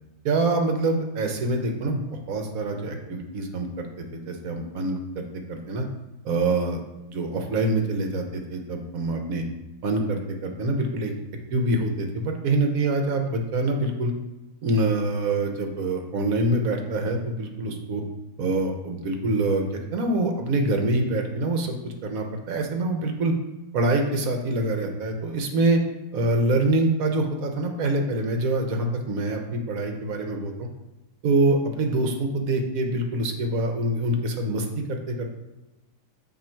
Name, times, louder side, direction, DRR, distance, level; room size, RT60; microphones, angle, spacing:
voice 1, 0.2-2.0 2.3-3.9 4.1-5.2 5.5-5.9 6.2-6.8 7.1-9.4 9.8-11.1 11.5-14.1 14.6-18.0 18.4-23.3 23.7-25.8 26.1-30.7 31.2-35.3, right 2 dB, 65° right, 3 dB, 1.2 m, -25 dB
8.9 x 3.0 x 4.4 m, 1.1 s
omnidirectional pair, 1.7 m